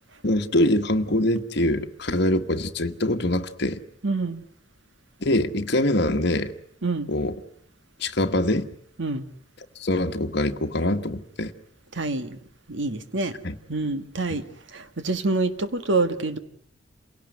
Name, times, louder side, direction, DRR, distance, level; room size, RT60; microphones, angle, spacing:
voice 1, 0.2-3.8 5.2-6.5 7.1-7.3 8.0-8.7 9.8-11.5 13.4-13.6 14.3-14.4, left 1 dB, 60° left, 6 dB, 1.5 m, -24 dB
voice 2, 4.0-4.4 6.8-7.1 9.0-9.2 12.0-12.4 12.7-13.4 13.7-14.4 14.7-16.4, right 3 dB, 70° right, 10 dB, 1.8 m, -26 dB
28.0 x 17.5 x 9.5 m, 0.68 s
head